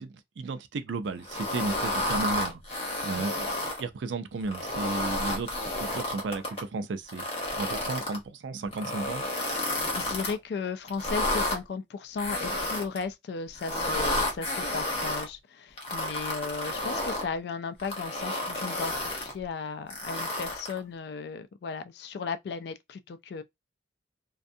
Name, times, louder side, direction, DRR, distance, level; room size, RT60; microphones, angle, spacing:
voice 1, 0.0-7.2 7.6-9.2, right 3 dB, 85° right, 0.4 m, -34 dB
sound 1, 1.3-3.8 4.4-6.6 7.1-8.2 8.7-10.3 10.9-11.6 12.2-13.0 13.6-15.3 15.8-17.3 17.8-19.3 19.9-20.8, left 1 dB, 30° left, 0.8 m, -31 dB
voice 2, 9.6-23.4, left 5 dB, 65° left, 0.3 m, -36 dB
2.5 x 2.3 x 2.6 m
head